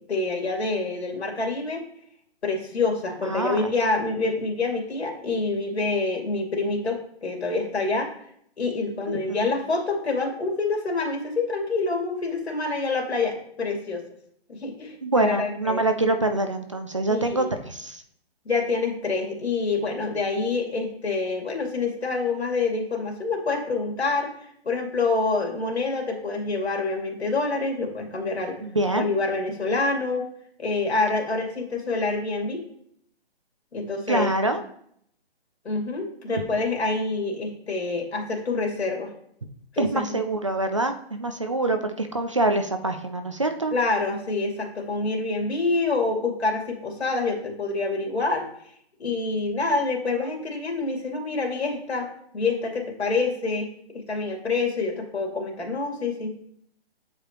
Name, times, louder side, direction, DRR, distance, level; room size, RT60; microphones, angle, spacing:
voice 1, 0.1-1.8 2.4-8.1 8.6-14.0 14.5-15.8 17.1-17.5 18.5-24.3 24.7-28.6 29.0-30.2 30.6-32.6 33.7-34.3 35.6-39.1 39.7-40.0 43.7-48.5 49.0-52.1 52.3-53.7 54.1-56.3, left 3 dB, 85° left, 1 dB, 2.4 m, -26 dB
voice 2, 3.3-3.7 9.1-9.5 15.0-18.0 28.6-29.1 34.1-34.6 36.3-36.4 39.8-43.7, right 2 dB, 30° right, 7 dB, 0.4 m, -25 dB
8.3 x 4.9 x 3.0 m, 0.69 s
hypercardioid pair, 160°, 32 cm